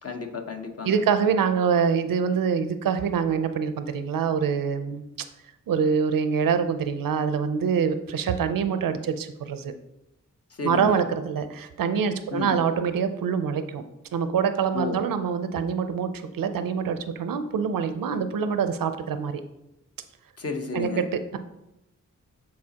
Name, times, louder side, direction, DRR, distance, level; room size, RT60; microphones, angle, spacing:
voice 1, 0.0-1.0 10.6-11.1 12.3-12.6 14.7-15.0 20.4-21.1, left 4 dB, 45° left, 4 dB, 0.9 m, -32 dB
voice 2, 0.8-5.0 5.7-9.7 10.6-13.8 14.1-19.4 20.7-21.4, right 6 dB, 90° right, 10 dB, 0.5 m, -25 dB
8.6 x 4.0 x 2.8 m, 0.89 s
cardioid pair, 60°, 33 cm